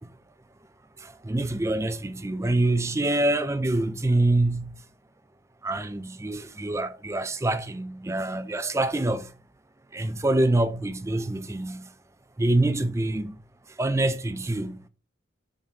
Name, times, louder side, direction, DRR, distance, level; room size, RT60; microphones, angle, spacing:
voice 1, 1.0-4.7 5.6-9.3 9.9-11.8 12.4-13.4 13.8-14.9, right 2 dB, 15° right, 0.4 m, -25 dB
7.4 x 3.9 x 4.1 m
head